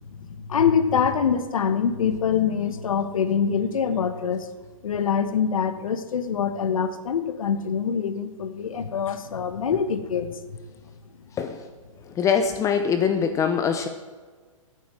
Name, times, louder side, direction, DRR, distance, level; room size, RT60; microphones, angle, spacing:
voice 1, 0.5-4.5 4.8-10.4, left 7 dB, 75° left, 11 dB, 1.3 m, -24 dB
voice 2, 12.2-13.9, left 7 dB, 20° left, 8 dB, 0.7 m, -23 dB
9.8 x 8.3 x 7.6 m, 1.5 s
hypercardioid pair, 135°, 18 cm